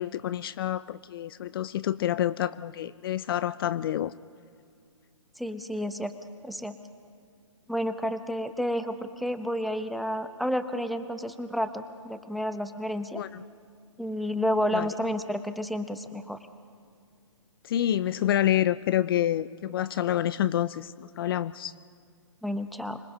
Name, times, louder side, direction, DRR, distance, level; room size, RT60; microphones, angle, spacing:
voice 1, 0.0-4.1 13.1-13.4 14.7-14.9 17.6-21.7, left 12 dB, 45° left, 16 dB, 0.5 m, -28 dB
voice 2, 5.4-6.1 6.4-6.8 7.7-13.2 14.0-16.4 22.4-23.0, equal, ahead, 9 dB, 0.8 m, -30 dB
26.0 x 20.5 x 5.6 m, 2.4 s
hypercardioid pair, 130°, 16 cm